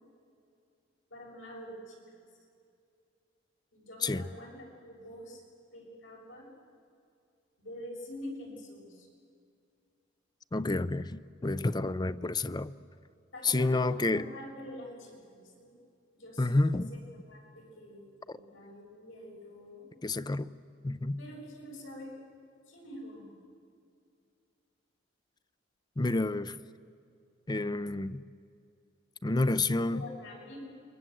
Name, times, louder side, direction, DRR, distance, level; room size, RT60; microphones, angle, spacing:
voice 1, 1.1-2.2 3.7-5.4 5.7-6.5 7.6-9.1 13.3-15.8 16.1-17.0 17.3-19.9 21.2-22.2 22.7-23.3 29.9-30.6, left 1 dB, 80° left, -1 dB, 7.2 m, -46 dB
voice 2, 10.5-12.8 13.4-14.3 16.4-16.9 20.0-20.5 20.8-21.2 26.0-26.6 27.5-28.2 29.2-30.1, left 2 dB, 20° left, 15 dB, 0.5 m, -29 dB
28.5 x 23.0 x 7.8 m, 2.4 s
head